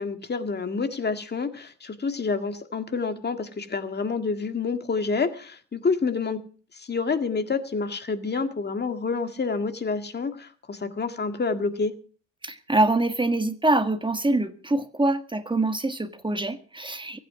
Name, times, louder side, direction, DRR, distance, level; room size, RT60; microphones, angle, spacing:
voice 1, 0.0-6.4 6.7-11.9, left 4 dB, 35° left, 8 dB, 1.9 m, -28 dB
voice 2, 12.4-17.2, right 2 dB, 15° right, 9 dB, 1.6 m, -24 dB
23.5 x 9.2 x 4.9 m, 0.40 s
cardioid pair, 90°, 30 cm